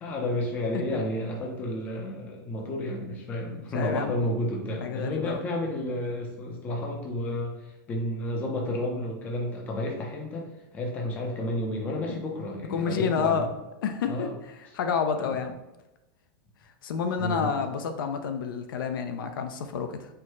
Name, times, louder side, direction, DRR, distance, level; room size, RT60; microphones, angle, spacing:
voice 1, 0.0-10.5 10.7-13.5 14.1-14.3 15.2-15.4 17.2-17.5, left 1 dB, 15° left, 0 dB, 0.5 m, -31 dB
voice 2, 3.7-4.1 4.8-5.4 12.7-13.5 13.8-14.3 14.7-15.6 16.8-20.1, left 6 dB, 70° left, 7 dB, 0.5 m, -29 dB
4.5 x 2.1 x 4.5 m, 1.0 s
supercardioid pair, 175°, 12 cm